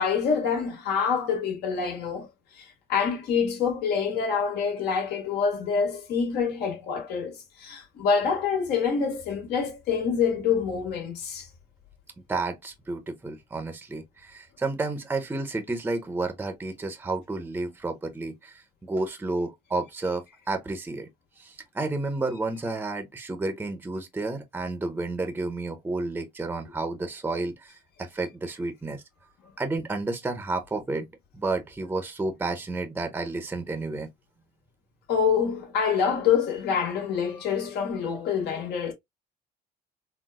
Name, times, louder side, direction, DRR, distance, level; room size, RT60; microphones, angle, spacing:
voice 1, 0.0-2.3 2.6-11.5 35.1-38.9, left 6 dB, 80° left, 1.5 m, -26 dB
voice 2, 12.3-21.1 21.4-31.1 31.3-34.1, right 2 dB, 10° right, 0.6 m, -31 dB
3.9 x 2.2 x 2.3 m
cardioid pair, 110°, 17 cm